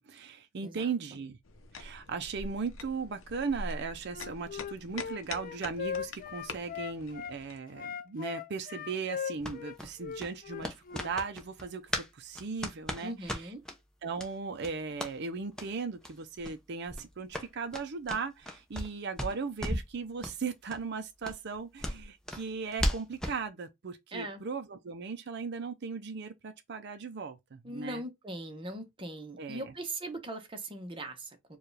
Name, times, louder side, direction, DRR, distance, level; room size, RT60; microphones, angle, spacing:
voice 1, 0.0-1.4 1.7-13.5 14.0-28.0 29.4-29.7, right 5 dB, 60° right, 0.5 m, -37 dB
sound 1, 1.4-7.6, left 3 dB, 85° left, 0.7 m, -44 dB
Wind instrument woodwind instrument, 4.1-7.4 7.7-11.1, left 7 dB, 45° left, 0.4 m, -39 dB
sound 2, 9.4-12.1 12.3-13.8 14.2-14.3 14.6-15.1 15.5-15.7 16.0-16.1 16.4-16.6 16.9-18.9 19.2-19.9 20.2-20.4 20.7-20.8 21.2-23.4, equal, 5° left, 0.8 m, -36 dB
voice 2, 13.0-13.6 24.1-24.4 27.6-31.6, right 1 dB, 25° right, 0.9 m, -40 dB
4.6 x 2.4 x 3.2 m
head